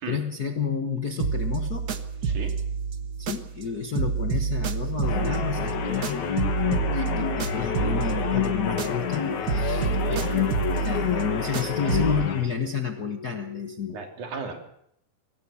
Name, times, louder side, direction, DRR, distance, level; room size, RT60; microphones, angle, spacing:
voice 1, 0.1-1.9 3.2-6.4 7.0-10.5 10.8-14.0, left 7 dB, 50° left, 6 dB, 1.1 m, -31 dB
sound 1, 0.8-13.9, left 1 dB, 30° left, 5.0 m, -45 dB
sound 2, 1.2-3.7 3.9-9.2 9.5-12.3, right 6 dB, 50° right, 1.1 m, -29 dB
voice 2, 2.2-2.5 6.8-7.1 13.9-14.6, right 5 dB, 75° right, 4 dB, 4.3 m, -36 dB
sound 3, 5.0-12.4, left 7 dB, 70° left, 3.4 m, -28 dB
26.0 x 17.5 x 7.1 m, 0.74 s
omnidirectional pair, 3.5 m